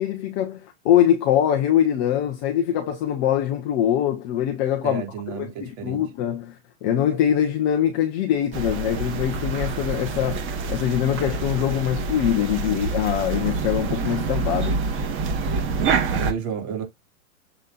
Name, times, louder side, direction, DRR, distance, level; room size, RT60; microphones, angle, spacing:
voice 1, 0.0-5.0 5.3-14.8, left 10 dB, 15° left, 0.3 m, -23 dB
voice 2, 4.8-6.0 16.1-16.8, right 8 dB, 45° right, 3.4 m, -31 dB
sound 1, 8.5-16.3, right 4 dB, 30° right, 1.6 m, -26 dB
6.8 x 3.9 x 3.8 m
hypercardioid pair, 135°, 42 cm